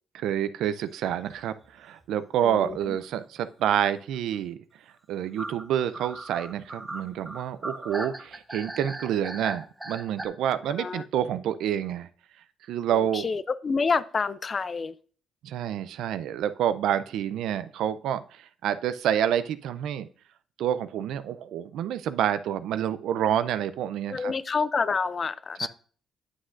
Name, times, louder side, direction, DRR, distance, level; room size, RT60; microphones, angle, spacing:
voice 1, 0.1-4.6 5.1-12.1 12.7-13.2 15.4-20.1 20.6-24.3 25.6-25.7, right 10 dB, 80° right, 0.5 m, -28 dB
sound 1, 1.1-1.4 1.6-1.7 2.0-2.1 3.0-3.3 5.4-10.3, right 1 dB, 15° right, 0.8 m, -38 dB
voice 2, 2.4-3.0 10.7-11.1 12.9-14.9 24.1-25.7, left 4 dB, 40° left, 0.5 m, -28 dB
9.5 x 6.2 x 2.6 m
cardioid pair, 90°, 0 cm